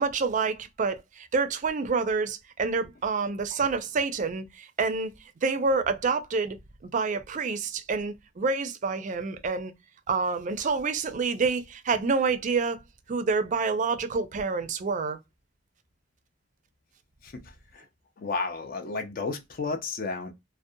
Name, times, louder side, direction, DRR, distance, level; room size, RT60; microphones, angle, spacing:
voice 1, 0.0-5.1 5.4-6.6 6.8-9.7 10.1-12.8 13.1-15.2, right 4 dB, 40° right, 0.4 m, -27 dB
voice 2, 17.2-17.9 18.2-20.3, left 4 dB, 50° left, 0.5 m, -33 dB
2.5 x 2.0 x 2.6 m
head